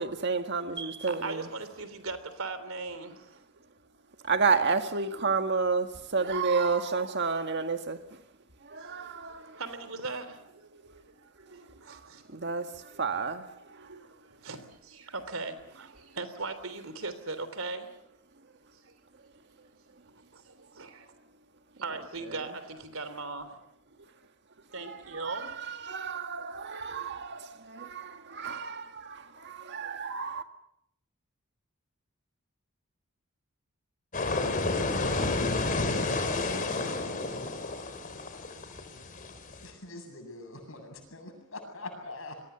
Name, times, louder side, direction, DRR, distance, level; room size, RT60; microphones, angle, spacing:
voice 1, 0.0-1.5 4.2-8.0 8.7-9.6 11.9-12.0 12.3-13.5 24.9-30.4, right 4 dB, 55° right, 1.8 m, -31 dB
voice 2, 1.1-3.3 8.7-12.2 12.9-13.0 13.5-18.0 18.8-18.9 20.3-21.1 21.7-23.6 23.9-24.0 24.7-25.6, right 3 dB, 85° right, 3.3 m, -39 dB
sound 1, 34.1-39.7, left 3 dB, 40° left, 3.5 m, -30 dB
voice 3, 39.6-42.4, left 2 dB, 75° left, 8.0 m, -43 dB
28.0 x 22.0 x 6.9 m
head